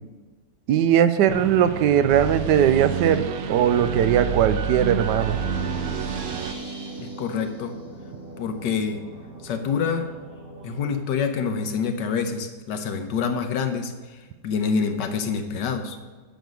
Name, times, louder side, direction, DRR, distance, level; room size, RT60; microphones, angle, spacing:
voice 1, 0.7-5.4, right 9 dB, 85° right, 11 dB, 1.2 m, -19 dB
sound 1, 1.3-6.5, right 7 dB, 70° right, 0.9 m, -29 dB
sound 2, 5.0-11.0, right 1 dB, 10° right, 1.2 m, -39 dB
voice 2, 7.0-7.7 8.4-9.0 9.4-10.1 10.6-13.9 14.4-16.0, left 6 dB, 90° left, 6 dB, 1.5 m, -26 dB
9.2 x 6.3 x 5.3 m, 1.3 s
omnidirectional pair, 1.8 m